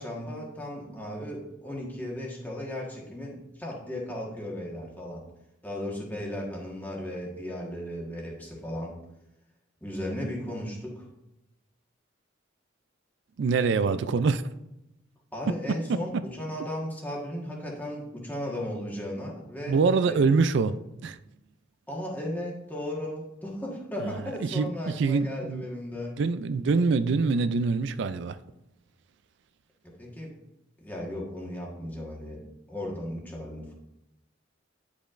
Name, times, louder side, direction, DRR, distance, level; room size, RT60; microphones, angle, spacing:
voice 1, 0.0-5.2 5.6-8.9 9.8-11.0 15.3-20.2 21.9-26.2 29.8-30.3 30.8-33.8, left 1 dB, 10° left, 1.4 m, -36 dB
voice 2, 13.4-14.4 15.5-16.0 19.7-20.8 21.0-21.2 24.0-25.7 26.2-28.4, right 4 dB, 60° right, 0.3 m, -25 dB
10.5 x 5.1 x 2.5 m
head